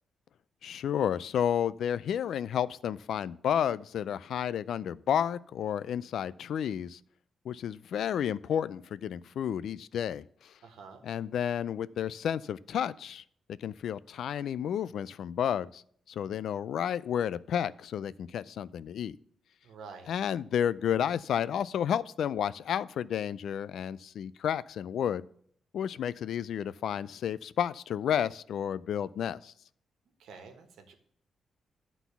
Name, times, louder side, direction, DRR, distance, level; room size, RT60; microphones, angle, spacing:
voice 1, 0.6-7.0 7.4-10.5 11.0-13.2 13.6-19.2 20.1-25.2 25.7-29.5, left 9 dB, 65° left, 18 dB, 0.3 m, -31 dB
voice 2, 10.6-11.0 19.6-20.1 30.2-30.9, right 5 dB, 90° right, 6 dB, 1.4 m, -48 dB
11.0 x 4.0 x 7.0 m, 0.63 s
wide cardioid pair, 165°, 0 cm